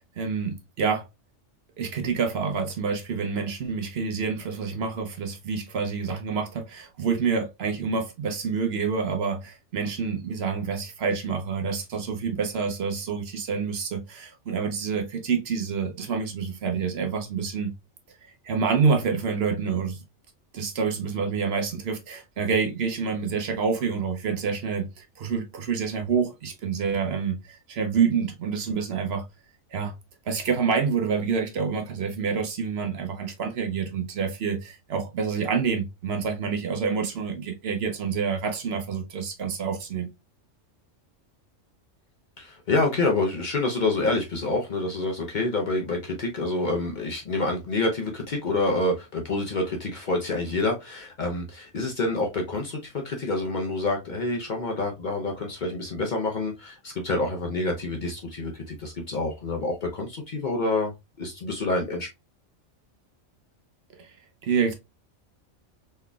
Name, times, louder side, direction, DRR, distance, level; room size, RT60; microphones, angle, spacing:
voice 1, 0.2-1.1 1.8-17.7 18.4-20.0 20.5-29.3 29.7-29.9 30.2-40.1 64.0-64.1 64.4-64.7, right 5 dB, 60° right, 0.8 m, -27 dB
voice 2, 42.4-60.9 61.2-62.1, left 2 dB, 45° left, 0.7 m, -27 dB
3.9 x 3.2 x 2.2 m
omnidirectional pair, 1.3 m